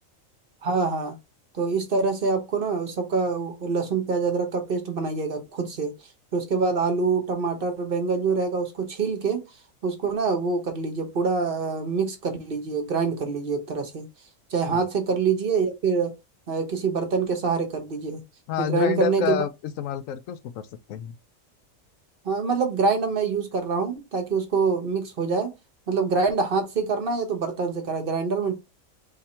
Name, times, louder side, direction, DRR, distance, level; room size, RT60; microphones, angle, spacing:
voice 1, 0.6-1.1 1.5-5.9 6.3-9.4 9.8-14.0 14.5-16.1 16.5-18.2 18.6-19.4 22.2-25.5 25.9-28.5, right 4 dB, 45° right, 1.0 m, -25 dB
voice 2, 18.5-21.2, left 10 dB, 75° left, 1.0 m, -28 dB
3.6 x 2.7 x 4.2 m
omnidirectional pair, 1.4 m